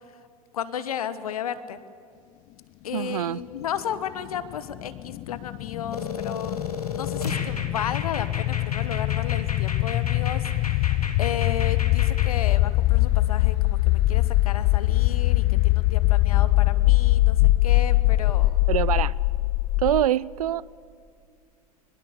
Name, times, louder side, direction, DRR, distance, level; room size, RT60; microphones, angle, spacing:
voice 1, 0.5-1.8 2.8-6.7 6.9-18.7, left 9 dB, 75° left, 1.2 m, -34 dB
voice 2, 2.9-3.4 18.7-19.1 19.8-20.9, right 12 dB, 75° right, 0.5 m, -25 dB
sound 1, 4.2-20.1, left 18 dB, 45° left, 0.5 m, -22 dB
sound 2, 5.9-12.3, left 4 dB, 90° left, 1.7 m, -35 dB
22.5 x 21.0 x 7.0 m
figure-of-eight pair, 80°, 19 cm